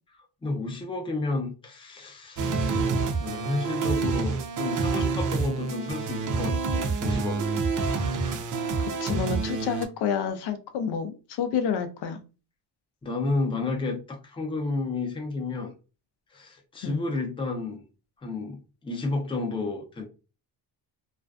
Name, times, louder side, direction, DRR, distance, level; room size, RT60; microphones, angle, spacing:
voice 1, 0.4-7.6 13.0-15.7 16.3-17.8 18.2-20.0, left 3 dB, 10° left, 0.5 m, -31 dB
sound 1, 2.4-9.9, right 4 dB, 45° right, 0.5 m, -27 dB
voice 2, 9.0-12.2 16.8-17.0, left 7 dB, 60° left, 0.5 m, -29 dB
2.4 x 2.2 x 2.4 m
cardioid pair, 115°, 45 cm